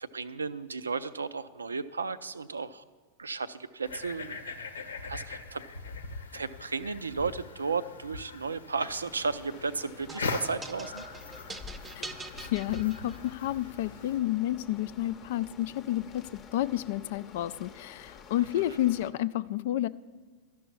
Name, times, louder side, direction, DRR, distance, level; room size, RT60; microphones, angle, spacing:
voice 1, 0.0-2.8 3.2-4.5 5.1-5.6 6.3-11.0 18.4-18.8, right 4 dB, 75° right, 14 dB, 0.4 m, -34 dB
sound 1, 3.8-14.2, left 4 dB, 70° left, 0.8 m, -41 dB
sound 2, 8.9-19.1, left 6 dB, 30° left, 0.8 m, -50 dB
sound 3, 10.1-13.5, right 3 dB, 15° right, 0.7 m, -44 dB
voice 2, 12.3-19.9, left 14 dB, 55° left, 17 dB, 0.3 m, -30 dB
12.5 x 6.1 x 8.5 m, 1.4 s
figure-of-eight pair, 90°, 0 cm